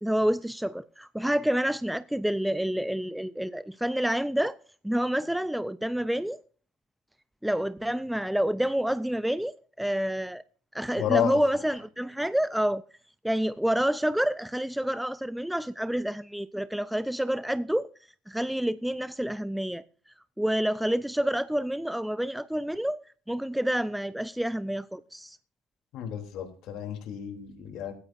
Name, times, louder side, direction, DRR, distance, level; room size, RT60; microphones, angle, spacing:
voice 1, 0.0-4.6 4.8-6.4 7.4-10.4 10.7-12.8 13.2-17.9 18.3-19.8 20.4-23.0 23.3-25.4, equal, 5° right, 0.5 m, -28 dB
voice 2, 11.0-11.4 25.9-27.9, left 10 dB, 60° left, 3.1 m, -30 dB
16.0 x 14.0 x 2.6 m
hypercardioid pair, 80°, 0 cm